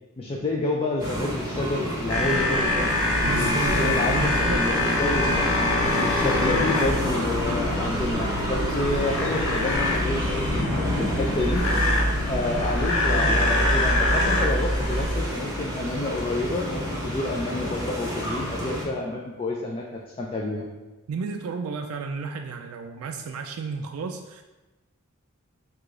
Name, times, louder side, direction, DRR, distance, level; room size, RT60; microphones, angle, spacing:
voice 1, 0.2-2.9 3.3-5.5 5.9-11.6 12.3-20.6, left 2 dB, 25° left, -2 dB, 0.3 m, -29 dB
sound 1, 1.0-18.9, equal, 15° right, 0.9 m, -29 dB
sound 2, 2.1-15.2, left 1 dB, 70° left, 0.6 m, -25 dB
voice 2, 3.2-4.7 21.1-24.4, right 4 dB, 85° right, 5 dB, 0.3 m, -32 dB
4.7 x 2.4 x 3.7 m, 1.1 s
head